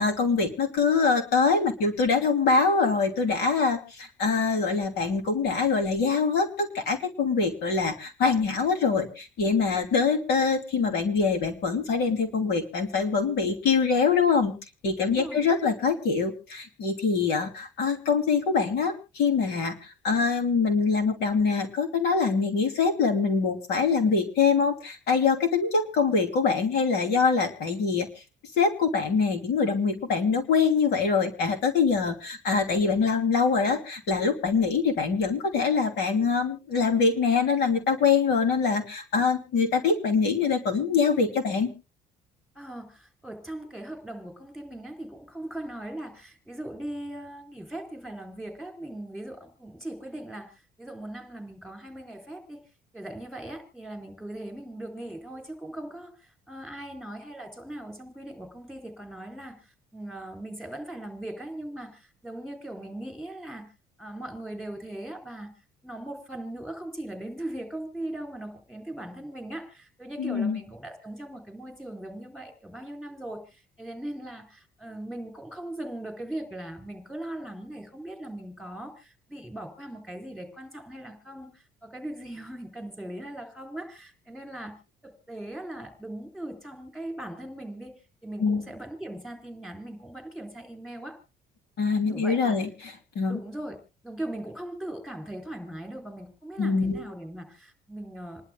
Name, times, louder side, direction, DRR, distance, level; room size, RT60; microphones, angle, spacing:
voice 1, 0.0-14.5 14.8-28.1 28.6-41.7 70.2-70.6 88.4-88.7 91.8-92.7 93.1-93.4 96.6-97.0, left 5 dB, 75° left, 5 dB, 2.9 m, -24 dB
voice 2, 15.0-15.6 42.5-52.6 52.9-63.7 64.0-65.5 65.8-84.7 85.0-87.9 88.2-91.2 92.1-92.6 93.3-93.8 94.0-98.4, right 1 dB, ahead, 4 dB, 4.1 m, -39 dB
28.0 x 11.5 x 2.3 m, 0.30 s
cardioid pair, 110°, 17 cm